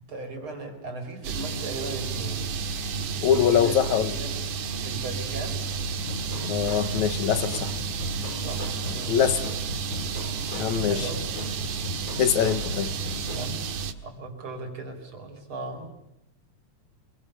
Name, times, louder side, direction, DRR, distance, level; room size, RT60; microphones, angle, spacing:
voice 1, 0.1-2.5 3.3-3.8 4.1-4.3 4.8-5.6 8.4-9.2 10.9-11.3 13.4-13.7 14.0-15.9, right 3 dB, 45° right, 5.7 m, -37 dB
sound 1, 1.2-13.9, right 5 dB, 75° right, 3.0 m, -31 dB
voice 2, 3.2-4.1 6.4-7.8 9.1-9.5 10.6-11.1 12.2-12.9, left 9 dB, 75° left, 2.6 m, -23 dB
sound 2, 5.8-13.5, left 2 dB, 40° left, 5.4 m, -38 dB
28.5 x 23.5 x 6.9 m
omnidirectional pair, 3.4 m